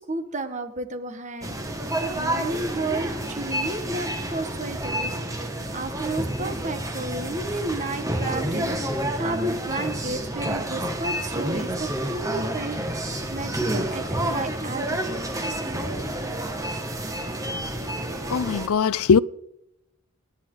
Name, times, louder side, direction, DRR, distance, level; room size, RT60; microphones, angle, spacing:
voice 1, 0.1-1.6 2.2-5.2 5.7-15.7, right 2 dB, 35° right, 1.6 m, -32 dB
sound 1, 1.4-18.7, right 1 dB, 15° right, 1.7 m, -29 dB
voice 2, 18.3-19.2, left 6 dB, 85° left, 0.5 m, -20 dB
28.0 x 10.5 x 4.0 m
head